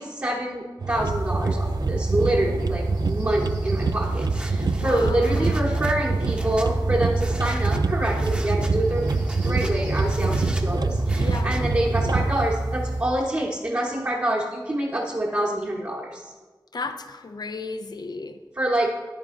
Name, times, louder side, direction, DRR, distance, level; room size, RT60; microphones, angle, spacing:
voice 1, 0.0-9.1 9.4-16.3 18.6-18.9, right 1 dB, 35° right, -3 dB, 1.2 m, -26 dB
sound 1, 0.8-12.5, right 4 dB, 55° right, 0.4 m, -26 dB
sound 2, 0.9-13.0, right 1 dB, 80° right, 3.6 m, -29 dB
sound 3, 3.2-11.8, right 1 dB, 15° right, 1.0 m, -40 dB
voice 2, 4.7-5.8 11.2-11.6 16.7-18.4, left 3 dB, 60° left, 8 dB, 0.5 m, -34 dB
9.7 x 9.7 x 3.8 m, 1.3 s
wide cardioid pair, 80°, 8 cm